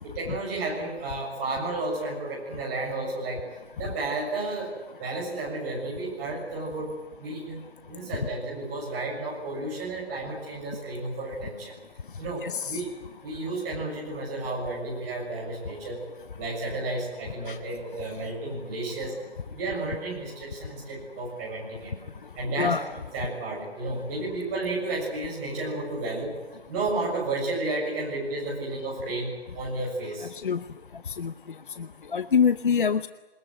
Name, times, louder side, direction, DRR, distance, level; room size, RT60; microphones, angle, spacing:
voice 1, 0.0-3.4 3.7-4.7 5.0-6.9 7.2-11.8 12.2-12.9 13.2-16.0 16.4-19.2 19.5-22.0 22.4-22.8 23.1-26.4 26.7-30.3, right 2 dB, 15° right, -4 dB, 7.1 m, -32 dB
voice 2, 12.4-12.8 17.5-17.6 22.6-22.8 30.4-30.6 31.2-31.3 32.1-33.1, left 6 dB, 50° left, 13 dB, 0.8 m, -24 dB
23.0 x 21.0 x 9.7 m, 1.2 s
hypercardioid pair, 175°, 33 cm